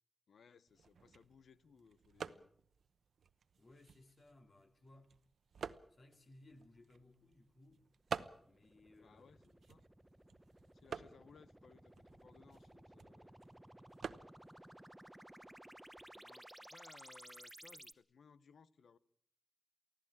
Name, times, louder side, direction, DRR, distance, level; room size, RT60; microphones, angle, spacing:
voice 1, 0.3-2.5 9.0-9.8 10.7-11.9 12.2-13.3 16.1-19.0, left 5 dB, 85° left, 1.0 m, -64 dB
sound 1, 0.7-16.2, right 6 dB, 85° right, 0.9 m, -52 dB
voice 2, 3.6-5.2 5.9-7.9 8.4-9.4 10.9-11.2, left 2 dB, 45° left, 2.7 m, -63 dB
sound 2, 8.2-17.9, right 1 dB, 10° right, 0.9 m, -58 dB
24.0 x 16.0 x 8.8 m
wide cardioid pair, 125°, 0 cm